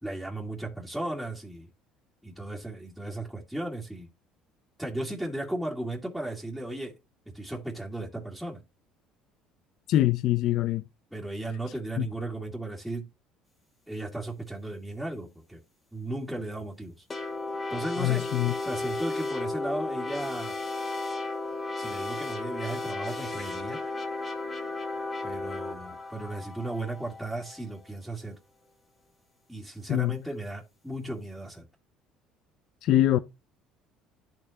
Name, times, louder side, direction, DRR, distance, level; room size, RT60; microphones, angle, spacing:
voice 1, 0.0-1.7 2.2-4.1 4.8-7.0 7.3-8.6 11.1-13.1 13.9-15.6 15.9-17.1 17.7-18.3 18.6-20.6 21.8-23.8 25.2-28.4 29.5-31.7, right 1 dB, ahead, 2.1 m, -35 dB
voice 2, 9.9-10.8 12.0-12.1 18.0-18.5 29.9-30.1 32.8-33.2, left 13 dB, 65° left, 0.5 m, -24 dB
sound 1, 17.1-27.6, left 3 dB, 25° left, 2.3 m, -34 dB
12.5 x 4.6 x 2.7 m
supercardioid pair, 100°, 0 cm